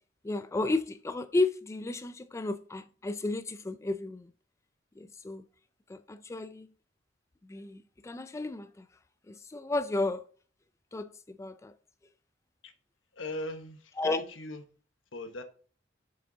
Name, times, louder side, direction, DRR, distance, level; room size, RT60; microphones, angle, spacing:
voice 1, 0.2-4.3 5.0-5.5 5.9-6.7 7.4-8.9 9.3-10.3 10.9-11.7 14.0-14.2, left 2 dB, 15° left, 0.3 m, -33 dB
voice 2, 13.1-14.6 15.1-15.4, left 2 dB, 75° left, 1.2 m, -39 dB
7.1 x 6.1 x 3.8 m
head